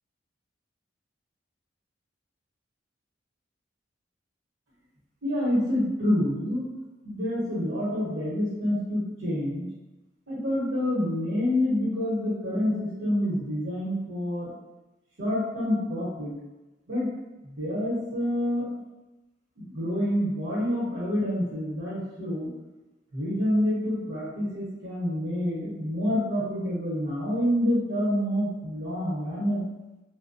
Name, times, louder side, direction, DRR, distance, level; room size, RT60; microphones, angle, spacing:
voice 1, 5.2-6.6 7.0-9.6 10.3-14.5 15.2-16.3 16.9-17.1 17.4-18.7 19.6-22.5 23.1-29.6, left 1 dB, 90° right, -9 dB, 0.9 m, -27 dB
2.6 x 2.1 x 2.5 m, 1.1 s
head